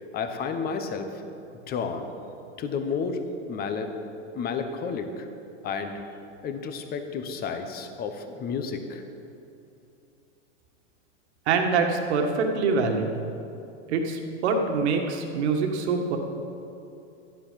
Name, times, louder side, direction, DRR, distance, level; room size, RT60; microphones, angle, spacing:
voice 1, 0.1-1.1 1.7-2.1 2.6-3.2 3.5-3.9 4.3-5.3 5.6-6.0 6.4-9.0, left 5 dB, 25° left, 6 dB, 1.2 m, -31 dB
voice 2, 11.5-13.2 13.9-16.2, right 4 dB, 65° right, 3 dB, 1.9 m, -25 dB
13.0 x 9.9 x 5.8 m, 2.7 s
hypercardioid pair, 135°, 36 cm